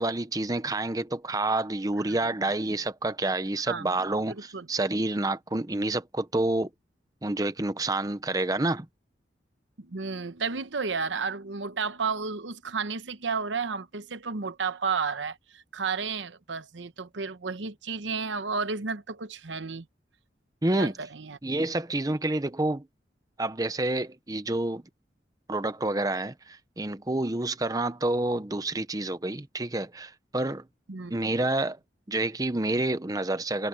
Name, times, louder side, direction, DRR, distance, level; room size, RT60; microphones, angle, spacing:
voice 1, 0.0-6.7 7.2-8.9 20.6-20.9 21.4-22.9 23.4-24.8 25.5-30.6 31.1-31.8 32.1-33.7, right 2 dB, 20° right, 0.8 m, -28 dB
voice 2, 9.8-19.9 20.7-21.4 30.9-31.1, right 5 dB, 85° right, 1.0 m, -32 dB
head